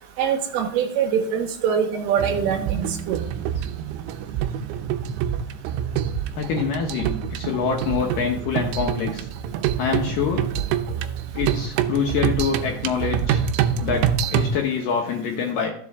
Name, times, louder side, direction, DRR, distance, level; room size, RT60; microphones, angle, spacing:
voice 1, 0.2-3.2, right 7 dB, 70° right, 4 dB, 2.8 m, -23 dB
sound 1, 2.2-14.6, right 8 dB, 90° right, 3.0 m, -26 dB
voice 2, 6.4-9.3 9.8-10.5 11.3-13.4 13.8-15.7, left 6 dB, 70° left, 2 dB, 2.1 m, -25 dB
14.0 x 7.4 x 3.6 m, 0.64 s
omnidirectional pair, 5.0 m